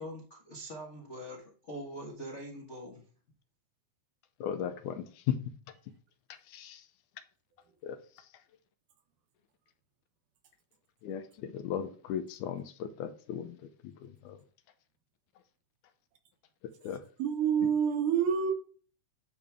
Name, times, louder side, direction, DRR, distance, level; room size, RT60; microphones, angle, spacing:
voice 1, 0.0-3.0, equal, 65° left, 0.6 m, -43 dB
voice 2, 4.4-5.5 6.3-6.9 7.8-8.3 11.0-14.4 16.8-17.0, left 9 dB, 80° left, 2.2 m, -37 dB
voice 3, 17.2-18.5, right 7 dB, 85° right, 2.7 m, -27 dB
10.5 x 3.5 x 3.5 m
omnidirectional pair, 3.5 m